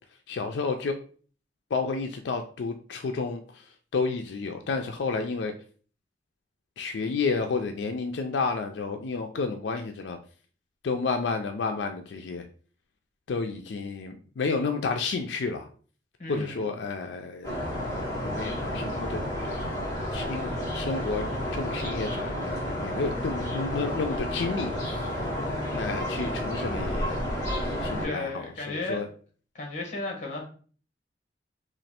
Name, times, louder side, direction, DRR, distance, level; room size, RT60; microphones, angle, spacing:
voice 1, 0.3-1.0 1.7-3.6 3.9-5.5 6.8-10.2 10.8-12.5 13.3-15.7 16.3-17.5 18.3-19.7 20.1-24.7 25.7-27.2 27.8-29.1, left 4 dB, 85° left, 5 dB, 0.4 m, -31 dB
voice 2, 16.2-16.6 25.2-25.9 28.0-29.0 29.5-30.4, left 2 dB, 45° left, 0 dB, 1.2 m, -35 dB
sound 1, 17.4-28.0, equal, 15° left, 1.8 m, -31 dB
3.1 x 2.4 x 4.2 m, 0.43 s
head